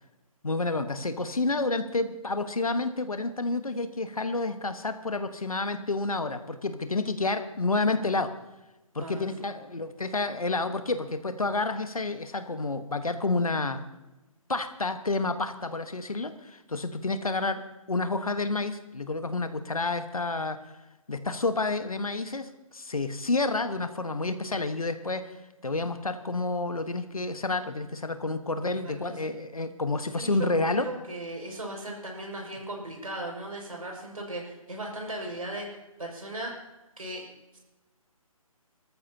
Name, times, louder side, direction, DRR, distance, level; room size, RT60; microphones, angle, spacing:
voice 1, 0.4-8.3 8.9-13.8 14.5-17.6 17.9-20.6 21.1-25.4 25.6-30.9, left 3 dB, 75° left, 9 dB, 1.3 m, -29 dB
voice 2, 28.8-29.3 30.1-36.6 37.0-37.2 37.5-37.6, right 1 dB, 75° right, 0 dB, 5.7 m, -37 dB
21.0 x 14.0 x 2.9 m, 1.0 s
figure-of-eight pair, 145°, 18 cm